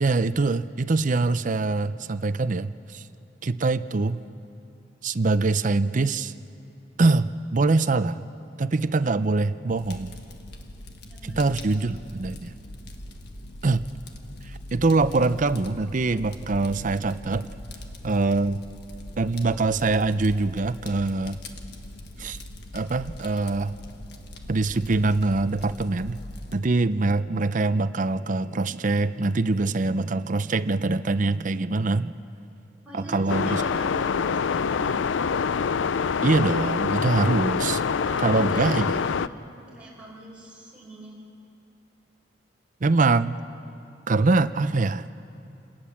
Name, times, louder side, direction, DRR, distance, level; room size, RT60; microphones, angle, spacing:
voice 1, 0.0-3.0 3.4-4.2 5.0-6.3 7.0-8.2 8.6-10.2 11.2-12.5 13.6-13.9 14.4-17.5 18.0-18.6 19.2-21.4 22.2-22.4 22.7-23.7 24.5-26.2 26.5-32.1 32.9-33.6 36.2-37.8 38.2-38.9 42.8-43.3 44.1-45.1, right 3 dB, 45° right, 13 dB, 0.6 m, -24 dB
Fire, 9.7-26.5, left 1 dB, 60° left, 1.5 m, -41 dB
voice 2, 11.0-11.4 32.8-35.0 38.0-41.1, equal, 5° right, -4 dB, 5.1 m, -41 dB
sound 1, 33.3-39.3, left 6 dB, 80° left, 0.5 m, -25 dB
28.0 x 18.5 x 7.2 m, 2.7 s
head